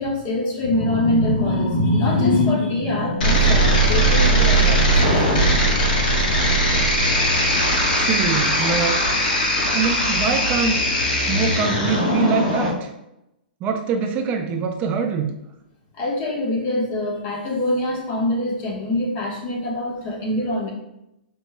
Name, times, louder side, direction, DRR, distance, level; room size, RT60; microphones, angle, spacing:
voice 1, 0.0-5.6 15.9-20.7, left 1 dB, 35° left, -1 dB, 1.3 m, -23 dB
sound 1, 3.2-12.7, right 1 dB, 65° left, 1.3 m, -19 dB
voice 2, 7.9-9.0 9.7-10.8 11.3-12.9 13.6-15.3, right 5 dB, 30° right, 4 dB, 0.4 m, -24 dB
5.5 x 4.1 x 2.2 m, 0.86 s
hypercardioid pair, 130°, 5 cm